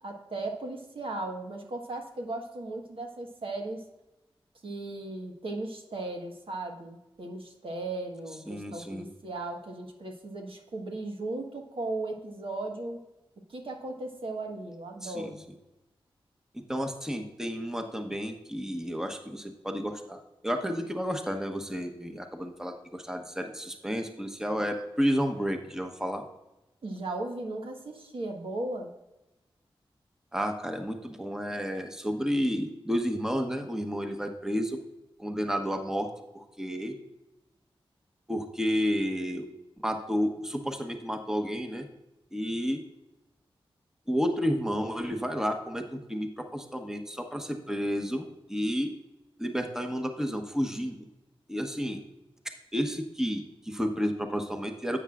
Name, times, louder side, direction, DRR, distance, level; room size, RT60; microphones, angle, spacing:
voice 1, 0.0-3.8 4.6-13.0 13.5-15.4 26.8-28.9, right 2 dB, 65° right, 2 dB, 1.4 m, -36 dB
voice 2, 8.5-9.1 15.0-15.3 16.7-26.2 30.3-34.8 35.2-36.1 36.3-37.0 38.3-39.5 39.8-41.9 42.3-42.8 44.1-48.2 48.5-48.9 49.4-51.0 51.5-52.0 52.7-55.0, equal, 5° right, 5 dB, 1.1 m, -31 dB
10.0 x 8.2 x 2.5 m, 0.97 s
cardioid pair, 45°, 10 cm